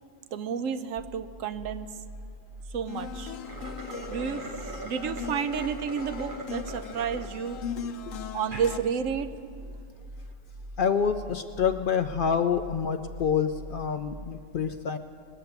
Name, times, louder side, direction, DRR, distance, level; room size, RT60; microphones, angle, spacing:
voice 1, 0.3-1.9 2.7-3.3 4.1-4.5 4.8-7.9 8.3-9.3, right 7 dB, 80° right, 11 dB, 1.0 m, -31 dB
sound 1, 1.0-14.3, equal, 5° right, 3.8 m, -44 dB
sound 2, 2.9-8.8, left 7 dB, 85° left, 1.1 m, -39 dB
sound 3, 3.3-7.3 7.8-7.9 8.4-8.7, right 1 dB, 40° right, 1.3 m, -41 dB
voice 2, 10.8-15.0, left 7 dB, 65° left, 8 dB, 0.5 m, -27 dB
20.5 x 7.0 x 7.9 m, 2.3 s
omnidirectional pair, 1.3 m